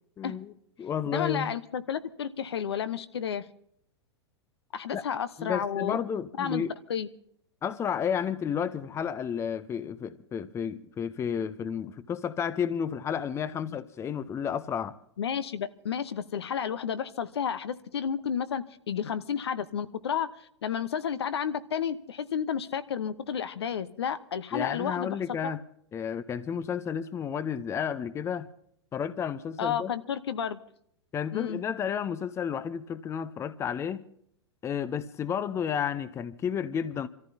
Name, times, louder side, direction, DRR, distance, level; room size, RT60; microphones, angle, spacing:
voice 1, 0.2-0.5 0.8-1.5 4.9-5.0 5.4-6.7 7.6-15.0 24.5-25.6 25.9-28.5 28.9-29.9 31.1-34.0 34.6-37.1, left 8 dB, 20° left, 0.7 m, -32 dB
voice 2, 1.1-3.4 4.7-6.0 6.4-7.1 15.2-20.3 20.6-25.2 25.4-25.5 29.6-30.6 31.3-31.6, left 8 dB, 65° left, 0.9 m, -31 dB
28.0 x 14.0 x 2.8 m
figure-of-eight pair, 100°, 14 cm